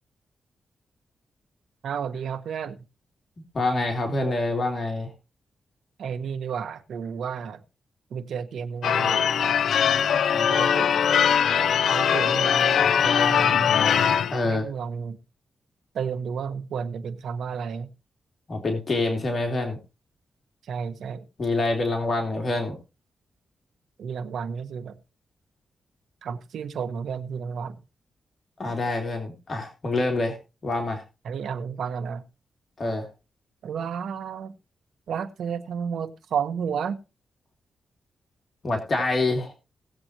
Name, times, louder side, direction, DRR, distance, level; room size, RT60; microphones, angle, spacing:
voice 1, 1.8-2.8 6.0-7.6 8.1-9.6 10.3-11.2 11.6-13.8 14.4-15.2 15.9-17.9 20.7-21.2 24.0-24.9 26.2-27.7 31.2-32.2 33.6-34.5 35.1-37.0, right 6 dB, 85° right, 1.3 m, -32 dB
voice 2, 3.5-5.1 14.3-14.7 18.5-19.8 21.4-22.8 28.6-30.4 30.6-31.0 32.8-33.1 38.6-39.5, left 2 dB, 45° left, 3.0 m, -26 dB
Church bell / Car / Alarm, 8.8-14.4, left 8 dB, 80° left, 0.6 m, -21 dB
18.5 x 7.9 x 3.1 m
cardioid pair, 85°, 0 cm